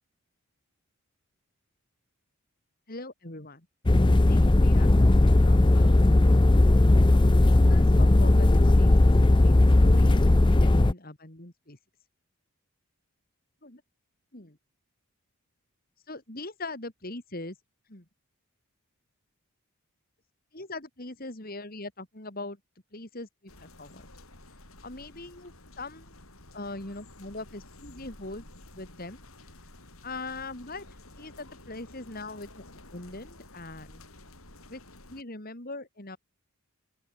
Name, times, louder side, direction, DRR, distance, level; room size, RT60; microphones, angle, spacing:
voice 1, 2.9-3.7 4.0-6.0 7.1-11.8 13.6-13.8 14.3-14.6 16.1-17.6 17.9-18.1 20.5-22.6 22.9-24.0 24.8-26.1 26.5-28.4 28.7-29.2 30.0-30.9 31.2-32.6 32.9-34.0 34.7-34.8 35.1-36.2, left 2 dB, 40° left, 2.8 m, -41 dB
sound 1, 3.9-10.9, left 2 dB, 20° left, 0.5 m, -18 dB
sound 2, 23.5-35.2, left 2 dB, 70° left, 7.0 m, -51 dB
open air
head